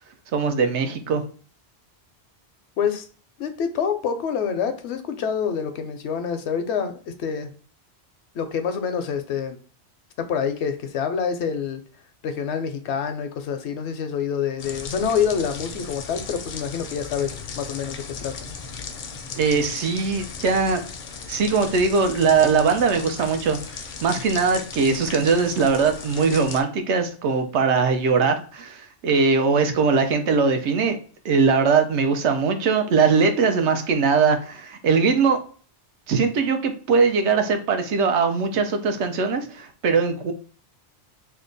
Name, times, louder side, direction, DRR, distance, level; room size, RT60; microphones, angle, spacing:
voice 1, 0.3-1.2 19.4-20.8 21.3-23.6 24.0-31.0 31.2-35.4 36.1-40.3, right 5 dB, 85° right, 6 dB, 0.9 m, -21 dB
voice 2, 3.4-7.5 8.3-9.6 10.2-11.8 12.2-18.3, left 7 dB, 80° left, 7 dB, 0.9 m, -26 dB
sound 1, 14.6-26.6, left 5 dB, 60° left, 0.6 m, -37 dB
2.8 x 2.2 x 3.8 m, 0.41 s
omnidirectional pair, 1.1 m